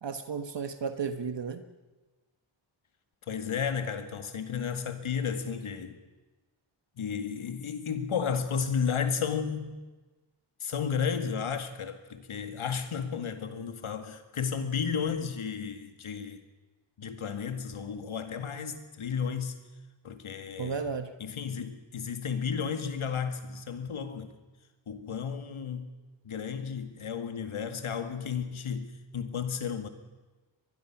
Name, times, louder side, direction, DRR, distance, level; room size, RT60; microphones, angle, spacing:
voice 1, 0.0-1.6 20.6-21.1, right 5 dB, 60° right, 1.4 m, -33 dB
voice 2, 3.3-6.0 7.0-9.8 10.6-16.4 17.0-19.6 20.0-20.8 21.2-24.3 24.9-25.9 26.2-29.9, left 6 dB, 85° left, 2.0 m, -33 dB
23.5 x 21.0 x 6.0 m
wide cardioid pair, 80°, 48 cm